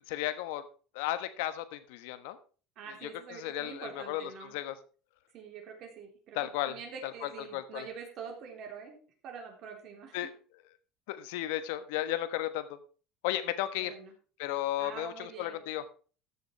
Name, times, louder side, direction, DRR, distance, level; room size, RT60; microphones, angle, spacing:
voice 1, 0.1-0.6 0.9-2.4 3.0-4.7 6.3-6.8 7.0-7.8 10.1-10.3 11.1-12.8 13.2-13.9 14.4-15.8, left 13 dB, 85° left, 12 dB, 1.3 m, -34 dB
voice 2, 2.8-4.6 5.3-10.3 13.7-14.1 14.8-15.6, right 6 dB, 45° right, 3 dB, 3.5 m, -45 dB
14.0 x 7.0 x 4.6 m, 0.38 s
cardioid pair, 160°, 0 cm